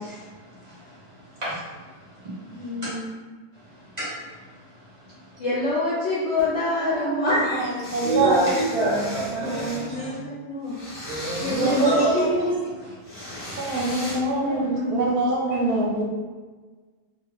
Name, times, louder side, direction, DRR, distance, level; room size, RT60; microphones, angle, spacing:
voice 1, 0.0-2.9 3.5-5.4 7.3-7.4 8.0-10.2 11.0-12.9 13.4-13.8, right 1 dB, 30° right, -9 dB, 0.8 m, -30 dB
voice 2, 2.5-3.1 5.4-7.5 9.4-10.7 11.4-12.4 14.5-15.1, left 2 dB, 70° left, -7 dB, 0.6 m, -27 dB
voice 3, 6.8-9.9 11.5-12.5 13.6-16.0, right 2 dB, 75° right, -2 dB, 1.0 m, -25 dB
sound 1, 7.8-9.9 10.7-12.4 13.0-14.2, left 1 dB, 30° left, 0.7 m, -37 dB
2.8 x 2.4 x 2.9 m, 1.4 s
omnidirectional pair, 1.8 m